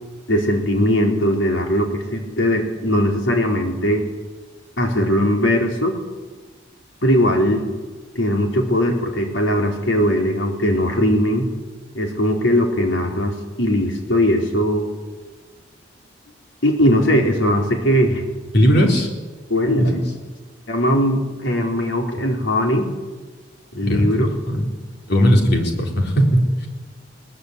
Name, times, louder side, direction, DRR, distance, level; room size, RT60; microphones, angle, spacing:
voice 1, 0.3-4.1 4.8-6.0 7.0-7.7 8.1-11.5 11.9-14.9 16.6-18.2 19.5-19.9 20.7-22.9 23.7-24.3, equal, 85° left, 2 dB, 4.2 m, -19 dB
voice 2, 18.5-19.1 19.8-20.0 23.8-24.7 25.1-26.7, equal, 60° left, 2 dB, 4.0 m, -18 dB
21.5 x 19.5 x 8.3 m, 1.3 s
head